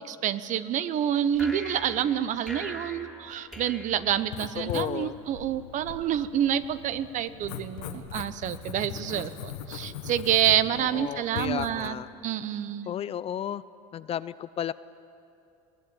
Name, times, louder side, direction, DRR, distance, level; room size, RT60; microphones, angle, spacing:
voice 1, 0.2-12.0 12.2-12.9, right 10 dB, 50° right, 14 dB, 0.9 m, -28 dB
sound 1, 1.3-4.8, equal, 5° right, 2.9 m, -42 dB
Writing, 4.2-11.9, left 9 dB, 85° left, 1.6 m, -40 dB
voice 2, 4.6-5.1 10.9-12.1 12.9-13.6 13.9-14.7, left 10 dB, 35° left, 16 dB, 0.5 m, -33 dB
22.0 x 17.0 x 8.9 m, 2.7 s
supercardioid pair, 105°, 17 cm